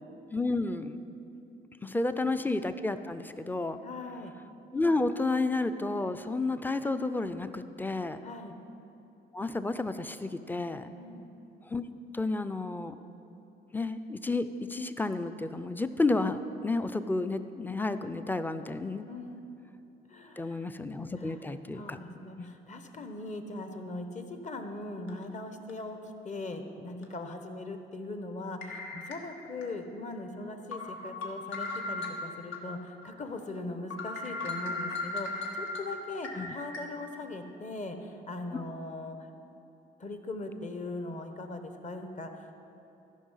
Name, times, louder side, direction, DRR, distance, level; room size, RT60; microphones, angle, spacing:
voice 1, 0.3-1.0 1.8-3.8 4.7-8.2 9.3-10.9 11.7-11.8 12.1-13.0 13.7-19.0 20.4-22.0 22.4-22.6 36.4-36.5 38.5-38.6, left 2 dB, 10° left, 10 dB, 0.4 m, -31 dB
voice 2, 1.9-2.3 3.8-4.3 8.2-8.5 10.9-11.3 19.1-19.4 20.1-20.7 21.1-39.3 40.0-42.5, left 2 dB, 35° left, 6 dB, 1.0 m, -40 dB
sound 1, 25.1-25.2 25.7-25.8 27.0-27.1 28.6-29.6 30.1-30.2 30.7-32.6 33.0-33.1 33.5-33.6 33.9-36.8, left 2 dB, 75° left, 1.4 m, -37 dB
13.5 x 5.7 x 5.6 m, 2.8 s
cardioid pair, 90°, 20 cm